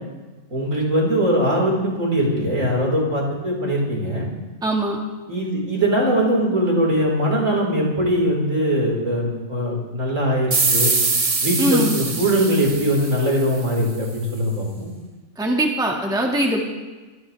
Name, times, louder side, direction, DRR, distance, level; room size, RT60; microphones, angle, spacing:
voice 1, 0.5-4.3 5.3-10.9 11.4-14.9, equal, 60° right, -3 dB, 5.2 m, -21 dB
voice 2, 4.6-5.0 11.6-12.0 15.4-16.6, right 1 dB, 5° right, 0 dB, 1.8 m, -21 dB
sound 1, 10.5-13.8, right 4 dB, 30° right, 0.9 m, -23 dB
24.0 x 16.0 x 3.5 m, 1.2 s
omnidirectional pair, 1.5 m